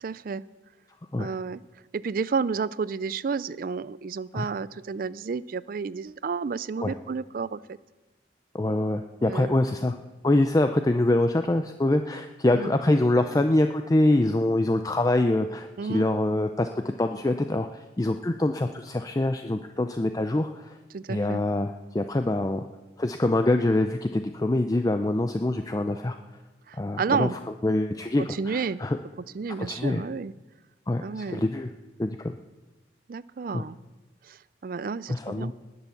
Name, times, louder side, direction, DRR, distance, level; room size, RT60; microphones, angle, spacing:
voice 1, 0.0-0.4 1.2-1.6 1.9-7.6 9.2-9.5 12.5-12.7 15.8-16.0 20.9-21.4 26.7-27.4 28.2-28.8 29.3-30.3 31.0-31.4 33.1-33.8 34.3-35.5, right 5 dB, 50° right, 19 dB, 0.4 m, -31 dB
voice 2, 8.5-10.0 10.2-20.8 21.1-22.6 23.0-26.2 26.8-27.3 27.6-29.0 29.6-30.0 30.9-31.7 32.0-32.3 33.5-33.6 35.1-35.5, left 1 dB, 20° left, 7 dB, 0.4 m, -25 dB
19.5 x 6.9 x 7.1 m, 1.1 s
head